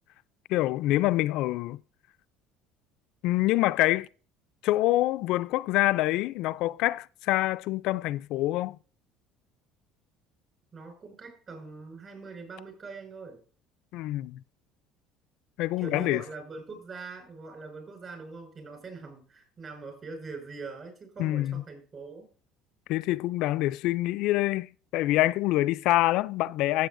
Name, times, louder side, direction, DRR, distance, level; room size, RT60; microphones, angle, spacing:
voice 1, 0.5-1.8 3.2-4.1 4.6-8.8 13.9-14.4 15.6-16.2 21.2-21.6 22.9-26.9, left 16 dB, 70° left, 0.3 m, -26 dB
voice 2, 10.7-13.4 15.8-22.3, right 4 dB, 35° right, 5.1 m, -43 dB
16.0 x 7.7 x 2.6 m
cardioid pair, 130°, 0 cm